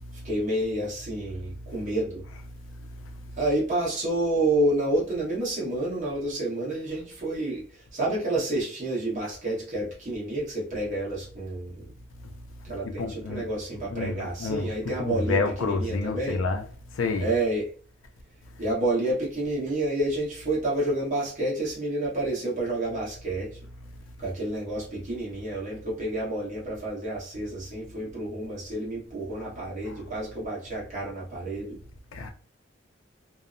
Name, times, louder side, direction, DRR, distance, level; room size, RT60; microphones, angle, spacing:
voice 1, 0.2-2.2 3.4-11.8 12.6-16.4 17.2-17.6 18.6-23.5 24.2-31.8, right 1 dB, 40° right, 1.1 m, -29 dB
voice 2, 13.0-13.5 13.9-16.6 17.0-17.3 29.9-30.0 32.1-32.3, left 3 dB, 75° left, 0.4 m, -29 dB
2.7 x 2.1 x 2.4 m
head